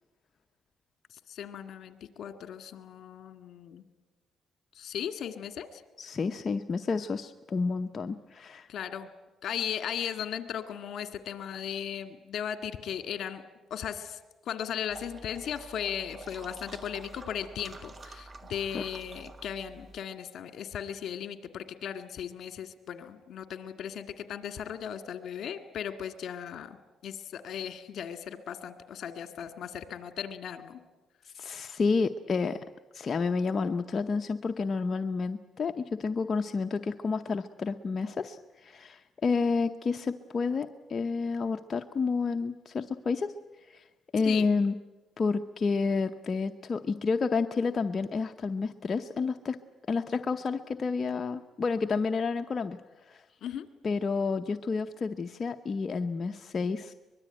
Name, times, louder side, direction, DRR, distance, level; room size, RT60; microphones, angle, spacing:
voice 1, 1.1-3.8 4.7-5.8 8.7-9.1 9.4-13.4 13.7-26.8 27.0-30.8 44.2-44.5 53.4-53.7, left 9 dB, 70° left, 9 dB, 1.9 m, -37 dB
voice 2, 6.0-8.7 18.7-18.8 31.3-32.6 32.9-43.3 43.7-43.8 44.1-44.7 45.2-49.6 49.9-52.8 53.1-53.2 53.8-56.9, left 4 dB, 40° left, 6 dB, 0.8 m, -30 dB
sound 1, 14.9-20.0, right 2 dB, 30° right, 1.9 m, -48 dB
24.0 x 21.5 x 9.0 m, 1.2 s
cardioid pair, 90°, 0 cm